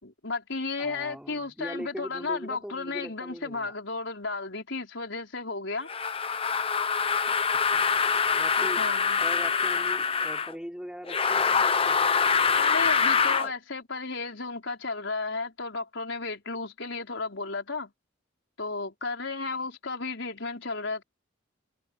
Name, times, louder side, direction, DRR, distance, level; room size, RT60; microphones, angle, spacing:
voice 1, 0.0-5.9 8.6-9.2 12.6-17.9 18.6-21.0, left 3 dB, 65° left, 5.0 m, -33 dB
voice 2, 0.8-3.7 7.5-8.9 9.2-12.0, equal, 5° right, 4.0 m, -41 dB
sound 1, 5.9-10.5 11.1-13.5, left 6 dB, 25° left, 0.8 m, -25 dB
head